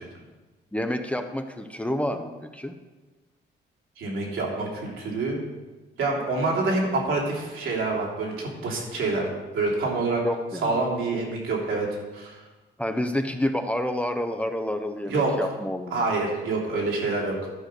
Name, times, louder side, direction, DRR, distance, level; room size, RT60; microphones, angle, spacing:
voice 1, 0.7-2.7 10.2-10.8 12.8-16.0, left 1 dB, 5° left, 6 dB, 0.7 m, -29 dB
voice 2, 4.0-5.4 6.0-9.2 9.5-10.2 10.6-11.9 12.1-12.4 15.1-15.4 15.9-17.4, right 3 dB, 75° right, -3 dB, 3.1 m, -26 dB
11.5 x 5.0 x 6.5 m, 1.2 s
cardioid pair, 90°, 20 cm